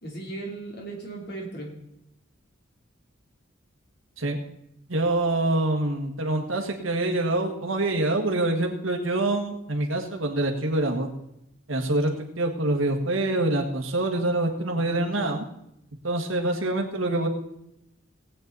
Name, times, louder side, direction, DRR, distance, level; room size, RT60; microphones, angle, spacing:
voice 1, 0.0-1.7 14.7-15.4, right 2 dB, 50° left, -1 dB, 3.2 m, -37 dB
voice 2, 4.9-11.1 11.7-15.4 16.0-17.3, right 2 dB, 75° right, 4 dB, 1.7 m, -25 dB
18.5 x 8.6 x 4.1 m, 0.81 s
head